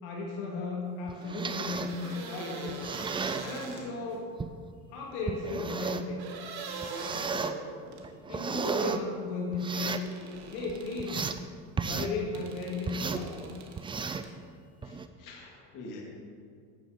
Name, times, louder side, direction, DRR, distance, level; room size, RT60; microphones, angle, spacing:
voice 1, 0.0-2.8 3.4-4.3 4.9-6.3 7.0-7.7 8.3-10.0 10.5-11.3 11.8-13.5, left 3 dB, 80° left, -1 dB, 2.5 m, -35 dB
sound 1, 1.1-2.0 2.7-3.5 4.4-4.5 5.3-6.1 6.8-7.5 8.0-9.0 9.5-10.1 10.6-11.4 11.8-12.1 12.9-13.3 13.8-14.3 14.8-15.1, right 5 dB, 15° right, 0.4 m, -34 dB
sound 2, 1.2-4.2 6.2-8.1 9.9-11.3 12.3-14.3, right 4 dB, 60° right, 1.8 m, -43 dB
voice 2, 14.7-16.0, left 2 dB, 50° left, -2 dB, 2.4 m, -46 dB
10.5 x 9.0 x 5.2 m, 2.1 s
supercardioid pair, 115°, 40 cm